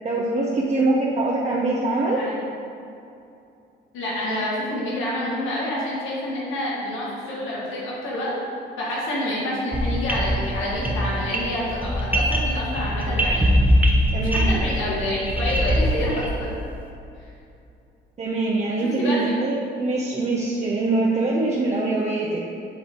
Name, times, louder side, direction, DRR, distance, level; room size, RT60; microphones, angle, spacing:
voice 1, 0.0-2.2 14.1-14.6 18.2-22.4, right 2 dB, 35° right, -4 dB, 0.8 m, -23 dB
voice 2, 3.9-8.3 8.8-13.4 14.1-16.6 18.8-19.4, left 1 dB, 85° left, -6 dB, 1.4 m, -28 dB
sound 1, 9.7-16.5, equal, 10° right, 1.0 m, -22 dB
10.0 x 3.4 x 3.8 m, 2.6 s
cardioid pair, 90°, 20 cm